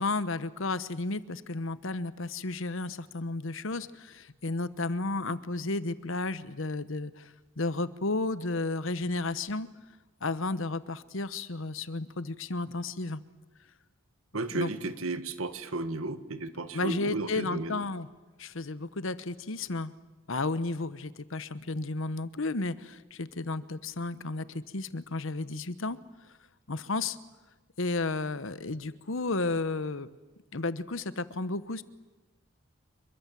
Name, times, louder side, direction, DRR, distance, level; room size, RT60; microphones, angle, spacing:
voice 1, 0.0-9.7 10.2-13.2 14.5-14.8 16.7-18.1 18.4-19.9 20.3-26.0 26.7-27.2 27.8-30.1 30.5-31.8, left 3 dB, 65° left, 15 dB, 1.1 m, -33 dB
voice 2, 14.3-17.8, right 2 dB, 75° right, 11 dB, 1.8 m, -34 dB
27.5 x 23.5 x 7.6 m, 1.2 s
head